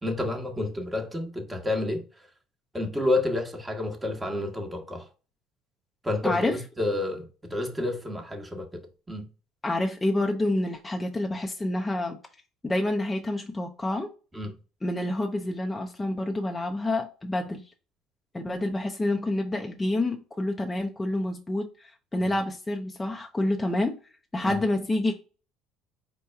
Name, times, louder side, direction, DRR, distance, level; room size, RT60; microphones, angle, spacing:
voice 1, 0.0-2.0 2.7-5.1 6.0-9.2 14.3-14.5 22.2-22.3 24.4-24.6, left 2 dB, 15° right, 1.3 m, -30 dB
voice 2, 6.2-6.6 9.6-12.2 12.6-14.1 14.8-17.7 18.3-24.0 24.3-25.1, left 1 dB, 15° left, 0.6 m, -28 dB
4.5 x 2.3 x 4.4 m
hypercardioid pair, 70°, 0 cm